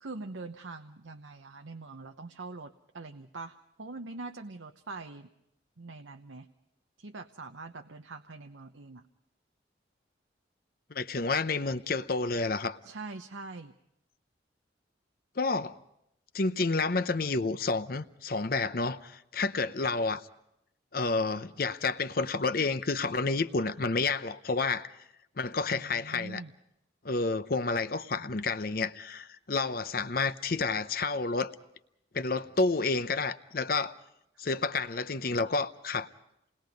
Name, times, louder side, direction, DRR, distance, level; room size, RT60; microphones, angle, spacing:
voice 1, 0.0-5.3 5.8-6.5 7.0-9.0 12.8-13.7 25.7-26.5, right 3 dB, 90° right, 0.9 m, -43 dB
voice 2, 10.9-12.8 15.4-15.7 16.3-20.2 20.9-24.9 25.4-26.4 27.0-31.5 32.1-33.9 34.4-36.1, left 3 dB, 50° left, 0.7 m, -30 dB
28.0 x 20.5 x 5.3 m
head